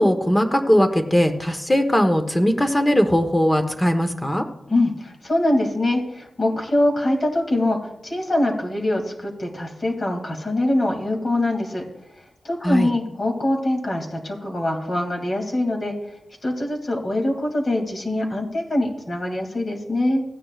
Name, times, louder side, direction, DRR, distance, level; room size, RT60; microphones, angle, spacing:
voice 1, 0.0-4.4 12.6-12.9, equal, 15° left, 6 dB, 1.2 m, -19 dB
voice 2, 4.7-7.8 8.0-11.8 12.4-15.9 16.4-20.2, left 1 dB, 40° left, 2 dB, 2.6 m, -23 dB
16.0 x 9.6 x 2.5 m, 0.84 s
wide cardioid pair, 95°, 0 cm